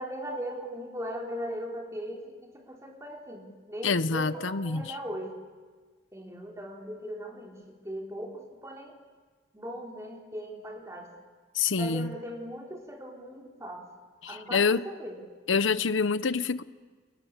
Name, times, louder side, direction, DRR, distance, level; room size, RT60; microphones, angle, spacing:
voice 1, 0.0-5.3 6.1-8.9 9.5-11.1 11.8-13.9 14.3-15.2, equal, 15° right, 0 dB, 3.6 m, -39 dB
voice 2, 3.8-5.0 11.5-12.1 14.2-14.8 15.5-16.6, left 5 dB, 80° left, 15 dB, 0.8 m, -26 dB
30.0 x 22.0 x 7.4 m, 1.5 s
head